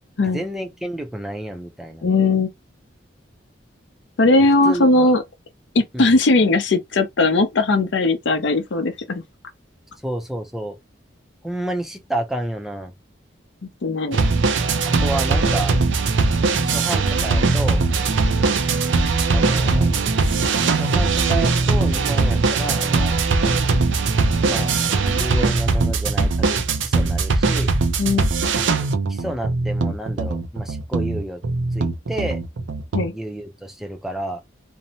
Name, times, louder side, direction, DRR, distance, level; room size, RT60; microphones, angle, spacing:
voice 1, 0.3-2.1 4.6-5.1 5.9-6.1 10.0-10.8 11.4-12.9 14.8-15.8 16.6-17.8 19.3-19.9 20.7-23.2 24.4-24.7 25.1-27.7 29.1-31.4 31.7-32.4 33.0-34.4, right 1 dB, ahead, 0.4 m, -30 dB
voice 2, 2.0-2.5 4.2-5.2 5.7-9.2 13.8-14.2 28.0-28.3 32.9-33.1, left 2 dB, 70° left, 0.6 m, -18 dB
sound 1, 14.1-33.1, right 3 dB, 75° right, 0.5 m, -20 dB
2.6 x 2.1 x 2.7 m
head